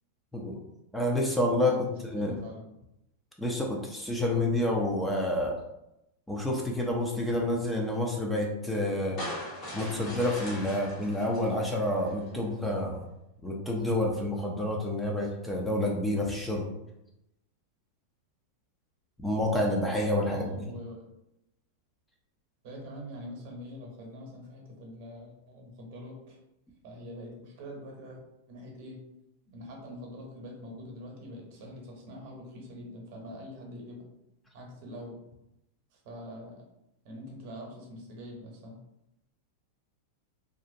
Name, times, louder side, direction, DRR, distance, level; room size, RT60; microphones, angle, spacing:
voice 1, 0.3-0.6 0.9-1.8 2.1-2.3 3.4-5.6 6.3-9.2 9.7-13.0 13.4-16.7 19.2-20.5, left 1 dB, 5° left, -1 dB, 0.4 m, -28 dB
voice 2, 1.6-2.6 20.2-21.1 22.6-26.4 26.8-28.2 28.5-29.0 29.5-34.0 34.5-35.2 35.9-36.6 37.0-38.8, equal, 60° right, -1 dB, 0.9 m, -44 dB
sound 1, 9.2-12.4, left 1 dB, 45° left, 1.0 m, -40 dB
2.5 x 2.0 x 2.6 m, 0.87 s
hypercardioid pair, 110°, 0 cm